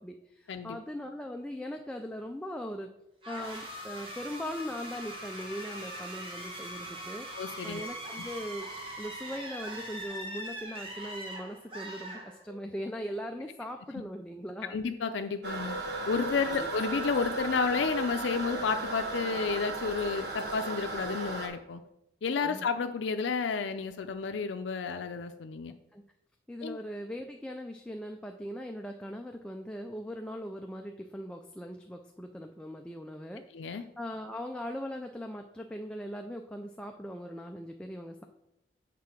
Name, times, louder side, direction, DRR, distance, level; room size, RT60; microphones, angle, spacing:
voice 1, 0.0-2.9 3.3-7.3 7.6-8.7 9.0-14.8 16.5-16.7 22.4-22.7 25.9-26.0 26.5-38.2, equal, 5° left, 3 dB, 0.3 m, -40 dB
sound 1, 3.2-12.8, right 1 dB, 30° right, 1.2 m, -41 dB
voice 2, 7.3-7.8 14.7-15.8 16.1-21.8 22.2-25.7 26.6-26.8 33.5-33.8, left 5 dB, 85° left, 7 dB, 0.4 m, -31 dB
Toilet flush, 15.4-21.5, right 2 dB, 60° right, 1.1 m, -35 dB
7.6 x 3.7 x 6.0 m, 0.85 s
head